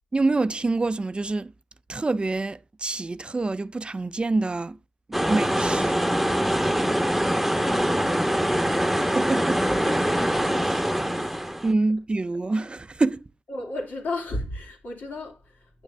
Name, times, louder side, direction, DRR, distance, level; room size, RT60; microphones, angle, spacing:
voice 1, 0.1-1.5 1.9-4.8 5.1-6.1 9.1-9.6 11.6-13.3, right 3 dB, 35° right, 0.5 m, -26 dB
sound 1, 5.1-11.7, equal, 5° right, 1.0 m, -24 dB
voice 2, 7.0-11.6 13.5-15.8, left 1 dB, 80° left, 2.8 m, -37 dB
9.0 x 6.6 x 3.2 m
cardioid pair, 55°, 3 cm